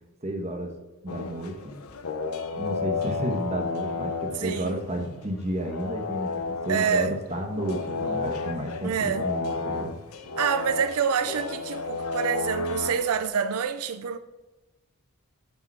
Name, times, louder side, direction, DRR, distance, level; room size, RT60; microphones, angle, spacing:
voice 1, 0.2-0.7 1.0-1.8 2.5-10.0, right 1 dB, 30° right, 1.3 m, -32 dB
sound 1, 1.1-5.3 5.6-13.3, left 4 dB, 85° left, 0.8 m, -32 dB
voice 2, 4.4-4.8 6.7-7.2 8.8-9.3 10.4-14.2, right 7 dB, 85° right, 0.4 m, -27 dB
8.9 x 5.3 x 5.5 m
head